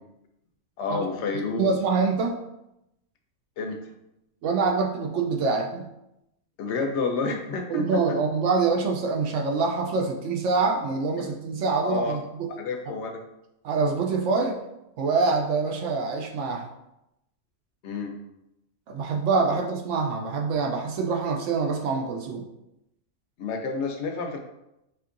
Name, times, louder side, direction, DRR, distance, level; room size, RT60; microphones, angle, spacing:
voice 1, 0.8-1.7 3.6-3.8 6.6-8.0 11.2-11.3 11.8-12.2 12.6-13.2 17.8-18.2 23.4-24.4, left 4 dB, 65° left, 4 dB, 0.8 m, -29 dB
voice 2, 1.6-2.4 4.4-5.9 7.7-12.5 13.6-14.6 15.0-16.7 18.9-22.5, right 4 dB, 70° right, 1 dB, 0.8 m, -25 dB
4.3 x 2.8 x 2.5 m, 0.86 s
omnidirectional pair, 1.4 m